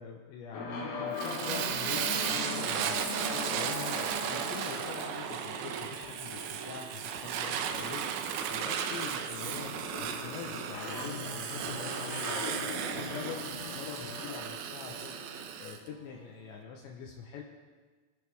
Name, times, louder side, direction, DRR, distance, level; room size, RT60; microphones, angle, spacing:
voice 1, 0.0-15.1 15.6-17.4, left 6 dB, 75° left, -1 dB, 3.1 m, -44 dB
sound 1, 0.5-16.3, left 3 dB, 60° left, 3.1 m, -41 dB
Fire, 1.2-15.8, right 8 dB, 75° right, 2.9 m, -35 dB
22.0 x 10.5 x 3.5 m, 1.4 s
omnidirectional pair, 5.7 m